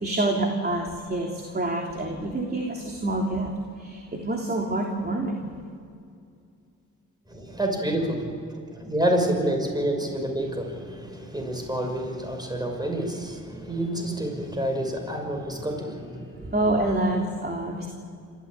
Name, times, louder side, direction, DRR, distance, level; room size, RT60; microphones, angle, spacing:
voice 1, 0.0-3.5 3.8-5.5 16.5-17.9, right 2 dB, 30° right, 0 dB, 3.2 m, -27 dB
voice 2, 7.3-16.6, right 1 dB, 10° right, 3 dB, 5.9 m, -28 dB
27.5 x 14.5 x 8.9 m, 2.4 s
cardioid pair, 60°, 33 cm